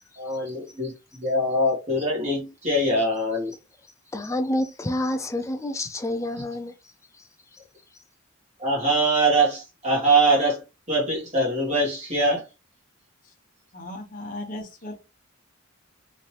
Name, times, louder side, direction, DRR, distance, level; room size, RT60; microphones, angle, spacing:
voice 1, 0.2-3.5 8.6-10.6 10.9-12.4, right 1 dB, 35° right, 1.2 m, -23 dB
voice 2, 4.1-6.7, left 1 dB, 15° left, 0.4 m, -28 dB
voice 3, 13.7-15.0, left 1 dB, 40° left, 0.9 m, -36 dB
3.2 x 2.6 x 2.8 m
head